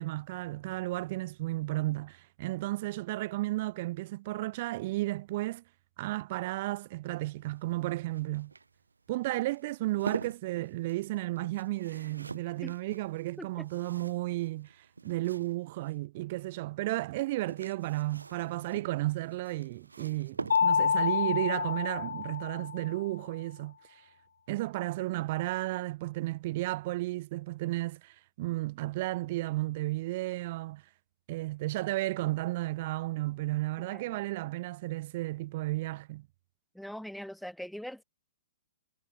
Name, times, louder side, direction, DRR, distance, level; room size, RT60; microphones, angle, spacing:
voice 1, 0.0-5.6 6.0-8.5 9.1-14.7 15.0-23.8 24.5-30.8 31.3-36.3, right 18 dB, 45° right, 0.9 m, -33 dB
sound 1, 7.2-16.0 17.1-21.1 22.7-23.0 23.3-23.4, right 4 dB, 80° right, 1.6 m, -45 dB
Mallet percussion, 20.5-23.0, left 6 dB, 70° left, 0.8 m, -28 dB
voice 2, 33.8-34.2 36.7-38.0, equal, ahead, 2.1 m, -42 dB
figure-of-eight pair, 115°, 0 cm